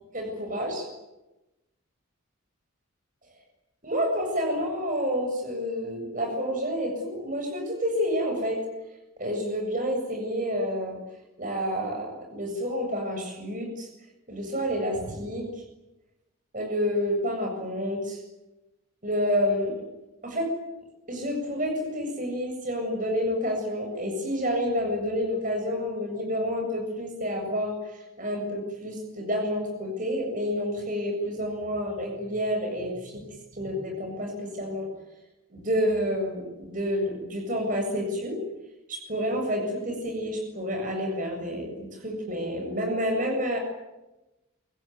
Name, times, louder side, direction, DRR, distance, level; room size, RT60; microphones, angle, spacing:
voice 1, 0.1-0.9 3.8-8.6 9.2-11.0 11.4-13.9 14.3-15.5 16.5-18.2 19.0-19.8 20.2-20.5 21.1-27.7 28.2-33.2 33.5-34.9 35.5-38.4 38.9-43.6, equal, 40° right, 3 dB, 7.5 m, -29 dB
25.5 x 23.5 x 9.5 m, 1.0 s
head